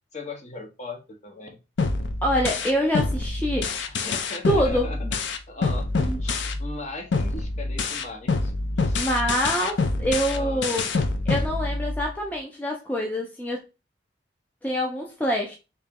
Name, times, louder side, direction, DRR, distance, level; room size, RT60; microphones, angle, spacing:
voice 1, 0.1-1.6 3.9-5.1 5.5-9.0 10.3-10.9, left 3 dB, 40° left, 0.8 m, -39 dB
sound 1, 1.8-6.8 7.1-12.1, left 3 dB, 75° left, 0.5 m, -26 dB
voice 2, 2.2-3.7 4.5-5.1 6.1-6.2 8.9-10.9 11.3-13.6 14.6-15.6, equal, 10° left, 0.5 m, -25 dB
3.1 x 2.8 x 3.6 m
head